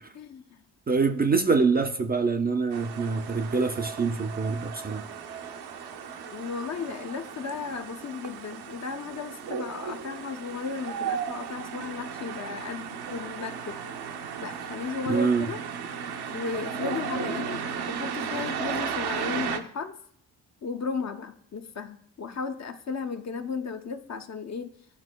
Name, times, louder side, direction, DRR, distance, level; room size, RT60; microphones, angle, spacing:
voice 1, 0.9-5.1 15.1-15.4, right 4 dB, 25° right, 0.4 m, -25 dB
sound 1, 2.7-19.6, right 7 dB, 70° right, 0.7 m, -35 dB
voice 2, 6.3-13.8 14.4-15.6 16.3-20.0 20.6-24.7, left 5 dB, 45° left, 0.6 m, -35 dB
11.0 x 4.3 x 2.2 m
supercardioid pair, 55°, 39 cm